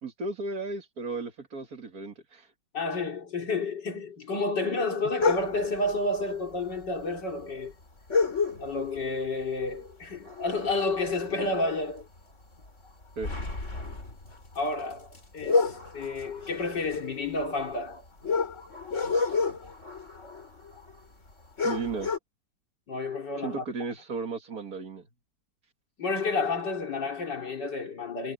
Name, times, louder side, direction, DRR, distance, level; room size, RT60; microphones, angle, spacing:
voice 1, 0.0-2.5 13.2-13.3 21.6-22.1 23.4-25.1, right 3 dB, 60° right, 2.4 m, -35 dB
voice 2, 2.7-7.7 8.6-12.1 14.5-15.1 15.3-18.0 22.9-23.6 26.0-28.3, left 3 dB, 90° left, 3.9 m, -30 dB
sound 1, 5.2-5.8 6.8-6.9 7.1-7.2 8.1-9.0 9.4-9.7 10.0-11.6 12.0-12.2 12.6-21.0 21.3-21.4 21.6-22.2, left 4 dB, 45° left, 4.3 m, -30 dB
omnidirectional pair, 1.8 m